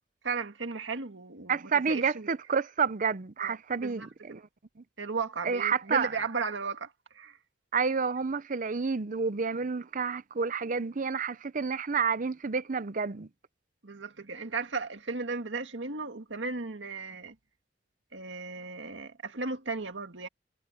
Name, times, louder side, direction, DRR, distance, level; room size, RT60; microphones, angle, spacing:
voice 1, 0.2-2.3 3.4-4.4 5.0-7.4 13.8-17.4 18.1-20.3, right 4 dB, 85° right, 1.9 m, -36 dB
voice 2, 1.5-4.4 5.4-6.1 7.7-13.3, right 5 dB, 45° right, 0.7 m, -29 dB
head